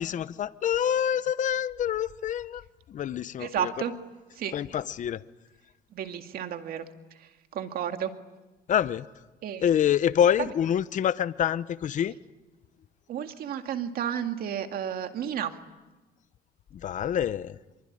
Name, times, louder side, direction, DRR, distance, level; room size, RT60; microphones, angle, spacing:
voice 1, 0.0-2.6 2.9-3.7 4.5-5.2 8.7-9.1 9.6-12.2 16.7-17.6, left 9 dB, 50° left, 0.9 m, -26 dB
voice 2, 3.4-3.9 4.3-4.5 5.9-6.9 7.2-8.1 9.4-9.6 13.1-15.6, right 9 dB, 60° right, 2.2 m, -32 dB
25.0 x 23.5 x 9.9 m
cardioid pair, 110°, 17 cm